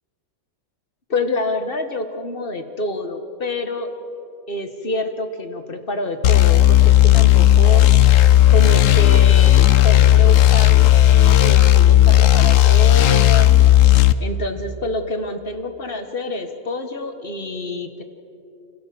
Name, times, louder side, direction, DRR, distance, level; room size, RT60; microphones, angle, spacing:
voice 1, 1.1-3.9 4.5-7.9 8.5-13.5 14.2-18.0, left 2 dB, 40° left, 7 dB, 1.7 m, -27 dB
sound 1, 6.2-14.1, left 13 dB, 70° left, 1.1 m, -12 dB
27.5 x 17.0 x 7.8 m, 2.7 s
omnidirectional pair, 1.5 m